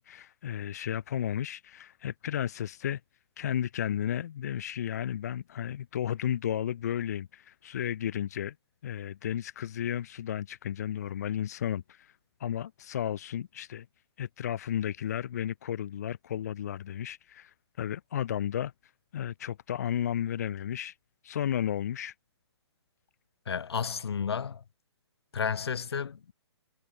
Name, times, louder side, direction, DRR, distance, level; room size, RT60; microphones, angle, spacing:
voice 1, 0.0-3.0 3.4-8.5 8.8-12.1 12.4-13.9 14.2-18.7 19.1-20.9 21.2-22.1, left 10 dB, 35° left, 1.3 m, -33 dB
voice 2, 23.5-24.6 25.3-26.3, left 7 dB, 60° left, 2.2 m, -32 dB
hypercardioid pair, 175°, 15 cm